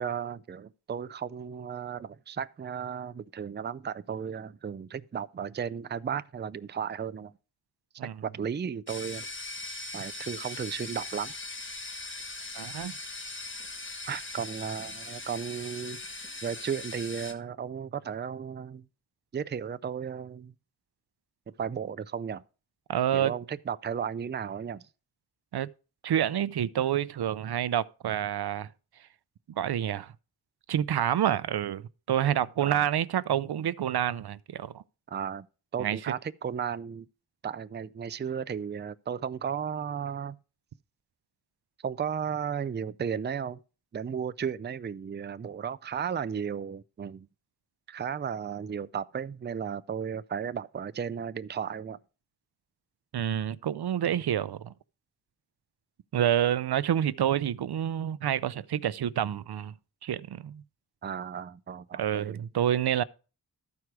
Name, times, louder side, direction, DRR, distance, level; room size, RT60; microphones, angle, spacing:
voice 1, 0.0-7.3 8.0-9.2 9.9-11.3 14.1-16.0 16.4-18.9 19.3-20.5 21.5-22.4 23.1-24.8 32.6-32.8 35.1-35.5 35.7-37.1 37.4-40.4 41.8-43.6 43.9-47.3 47.9-52.0 61.0-62.4, right 7 dB, 30° right, 0.4 m, -34 dB
sound 1, 8.9-17.3, left 2 dB, 30° left, 1.7 m, -40 dB
voice 2, 12.6-12.9 22.9-23.3 25.5-25.7 26.0-28.7 29.6-30.1 30.7-31.8 32.1-34.8 35.8-36.1 53.1-54.7 56.1-59.7 60.0-60.6 62.0-63.0, right 10 dB, 80° right, 0.5 m, -28 dB
13.0 x 4.8 x 6.0 m
wide cardioid pair, 110°, 38 cm